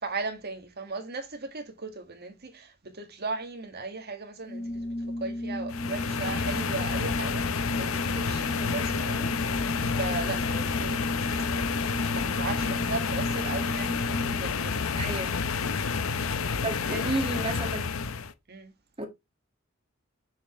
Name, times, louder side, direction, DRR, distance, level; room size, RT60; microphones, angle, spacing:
voice 1, 0.0-4.9 5.2-9.3 10.0-11.0 12.1-14.9 16.9-17.1 18.5-18.7, right 3 dB, 50° right, 1.8 m, -37 dB
Organ, 4.4-14.7, left 1 dB, 35° left, 0.7 m, -34 dB
sound 1, 5.7-18.3, left 5 dB, 85° left, 0.7 m, -29 dB
voice 2, 15.0-15.4 16.6-17.9 19.0-19.1, right 2 dB, 30° right, 1.9 m, -32 dB
6.7 x 6.0 x 3.1 m
head